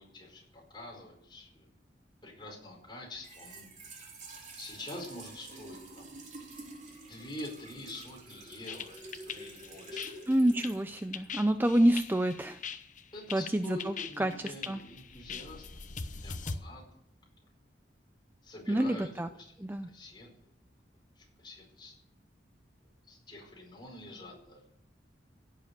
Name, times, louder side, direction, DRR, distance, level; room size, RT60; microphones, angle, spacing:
voice 1, 0.0-1.7 2.2-3.7 4.0-4.2 4.6-6.2 7.0-10.1 13.1-15.7 16.2-16.8 18.4-20.5 21.2-21.9 23.1-24.6, left 1 dB, 25° left, 0 dB, 5.1 m, -46 dB
Trickle dribble / Fill (with liquid), 3.1-11.9, right 2 dB, 45° right, 4.0 m, -49 dB
sound 1, 8.7-16.6, left 5 dB, 45° left, 0.9 m, -41 dB
voice 2, 10.3-12.6 13.3-14.8 18.7-19.3 19.6-19.9, right 1 dB, 10° right, 9 dB, 0.5 m, -28 dB
16.5 x 7.5 x 8.3 m, 0.71 s
head